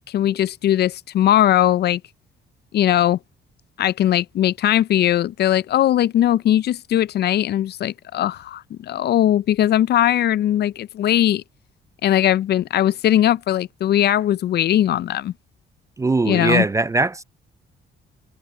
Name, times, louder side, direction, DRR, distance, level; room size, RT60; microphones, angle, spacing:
voice 1, 0.0-2.0 2.7-3.2 3.8-11.4 12.0-15.3 16.2-16.7, left 12 dB, 55° left, 0.4 m, -19 dB
voice 2, 16.0-17.2, right 3 dB, 15° right, 0.3 m, -20 dB
cardioid pair, 90°, 20 cm